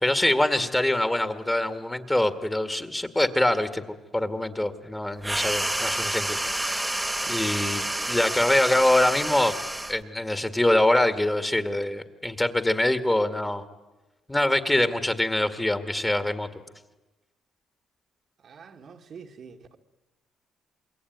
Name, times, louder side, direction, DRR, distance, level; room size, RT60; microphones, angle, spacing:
voice 1, 0.0-3.8 4.1-6.9 7.3-9.5 9.9-13.6 14.3-16.5, left 1 dB, 10° left, 9 dB, 1.9 m, -24 dB
sound 1, 5.2-10.0, right 1 dB, 10° right, 1.3 m, -29 dB
voice 2, 18.4-19.8, right 6 dB, 55° right, 3 dB, 1.9 m, -46 dB
27.0 x 22.0 x 9.4 m, 1.1 s
cardioid pair, 90°, 0 cm